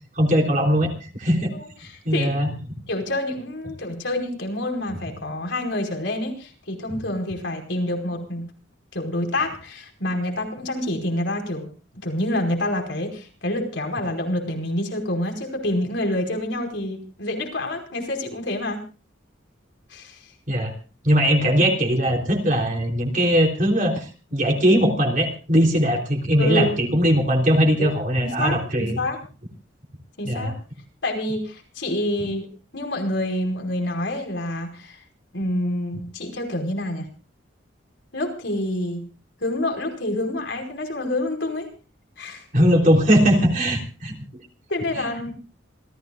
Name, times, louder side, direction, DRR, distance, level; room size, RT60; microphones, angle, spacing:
voice 1, 0.1-1.5 2.1-2.5 20.5-20.7 21.0-29.0 30.3-30.5 42.5-44.2 45.0-45.1, equal, 45° right, 0 dB, 3.5 m, -20 dB
voice 2, 1.8-2.3 2.9-8.5 8.9-11.7 12.0-18.8 19.9-20.2 26.4-26.8 27.8-27.9 28.2-29.2 30.2-30.5 31.0-32.5 32.7-35.0 35.3-37.1 38.1-39.1 39.4-41.7 42.2-42.4 44.7-45.3, left 1 dB, 75° left, 3 dB, 5.1 m, -27 dB
27.5 x 15.5 x 2.4 m, 0.36 s
head